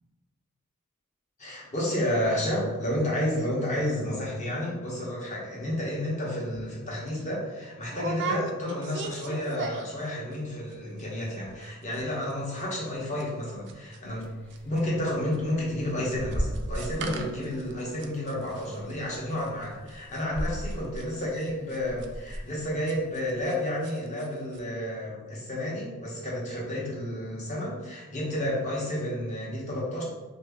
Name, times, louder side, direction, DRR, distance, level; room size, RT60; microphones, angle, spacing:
voice 1, 1.4-14.3 14.6-30.0, left 1 dB, 35° left, -4 dB, 0.9 m, -31 dB
sound 1, 6.5-6.7 7.1-7.2 7.9-10.1 10.3-10.7 11.0-11.1 11.3-11.7 11.9-14.2 14.5-23.6 23.8-24.3 24.5-24.6, right 4 dB, 55° right, 0.3 m, -39 dB
sound 2, 14.0-23.4, equal, 5° left, 0.6 m, -39 dB
2.7 x 2.6 x 3.5 m, 1.3 s
head